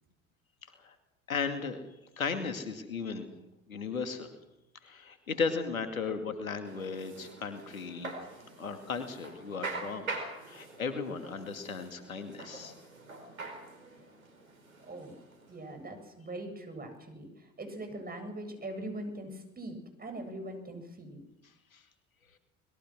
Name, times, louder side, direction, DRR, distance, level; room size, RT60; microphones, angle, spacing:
voice 1, 1.3-1.8 2.2-3.3 3.7-4.3 4.8-8.1 8.6-10.1 10.5-12.7 21.7-21.8, left 5 dB, 90° left, 7 dB, 2.5 m, -35 dB
sound 1, 6.6-16.0, right 3 dB, 90° right, 4.8 m, -44 dB
voice 2, 15.5-21.2, right 1 dB, 20° right, 6 dB, 8.0 m, -42 dB
25.5 x 21.5 x 6.3 m, 0.90 s
hypercardioid pair, 70°, 40 cm